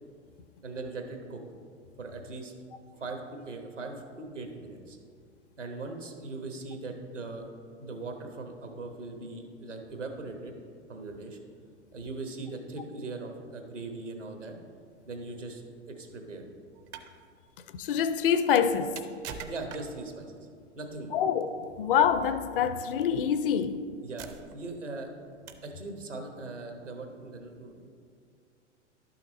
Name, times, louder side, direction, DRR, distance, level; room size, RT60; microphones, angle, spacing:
voice 1, 0.6-1.4 2.0-2.5 3.0-5.0 5.6-7.5 7.8-10.5 10.9-11.4 11.9-14.5 15.1-16.5 19.5-20.5 20.8-21.2 24.0-25.1 25.6-27.9, right 3 dB, 85° right, 1.3 m, -40 dB
sound 1, 16.7-17.1 18.5-20.1 21.4-21.6 22.9-23.0 23.6-23.7 24.2-24.7 25.5-25.8, right 7 dB, 25° right, 0.4 m, -44 dB
voice 2, 17.7-19.0 21.1-23.8, left 8 dB, 50° left, 0.5 m, -26 dB
11.5 x 5.8 x 4.1 m
figure-of-eight pair, 95°, 36 cm